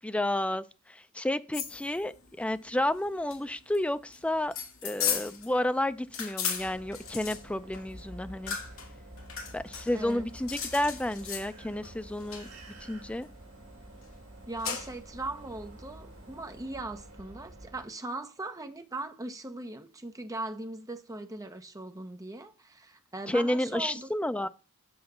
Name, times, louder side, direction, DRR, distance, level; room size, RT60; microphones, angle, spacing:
voice 1, 0.0-4.5 4.8-8.6 9.5-12.5 12.8-13.3 23.3-24.5, left 1 dB, 5° left, 0.3 m, -31 dB
sound 1, 1.5-16.6, left 7 dB, 70° left, 2.0 m, -38 dB
sound 2, 6.6-17.9, right 1 dB, 85° right, 1.7 m, -49 dB
voice 2, 9.9-10.3 14.5-24.1, right 2 dB, 15° right, 0.8 m, -39 dB
7.9 x 3.9 x 6.8 m
head